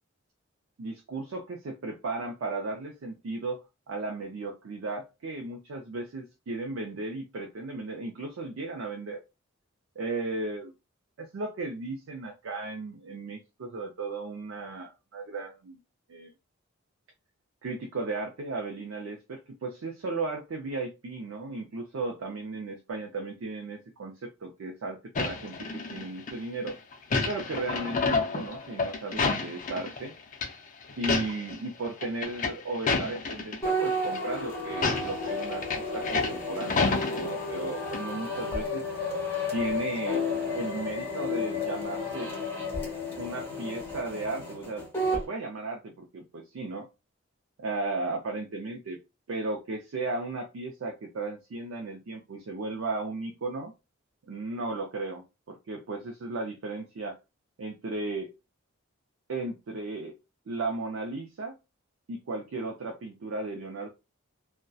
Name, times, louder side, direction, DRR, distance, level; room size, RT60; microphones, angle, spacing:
voice 1, 0.8-9.2 10.0-10.7 11.2-15.8 16.1-16.3 17.6-26.8 27.3-30.1 31.0-38.8 39.5-42.3 43.2-46.9 47.6-49.0 49.3-53.7 54.3-57.2 57.6-58.3 59.3-60.2 60.5-61.6 62.1-63.9, right 3 dB, 70° right, 2 dB, 0.4 m, -35 dB
sound 1, 25.2-26.3 26.7-30.1 30.3-30.5 30.9-31.6 31.8-33.6 34.0-34.2 34.7-37.7 37.9-38.0, left 4 dB, 40° left, 0.4 m, -29 dB
sound 2, 33.6-45.3, left 2 dB, 10° left, 1.0 m, -32 dB
2.6 x 2.1 x 2.2 m, 0.26 s
head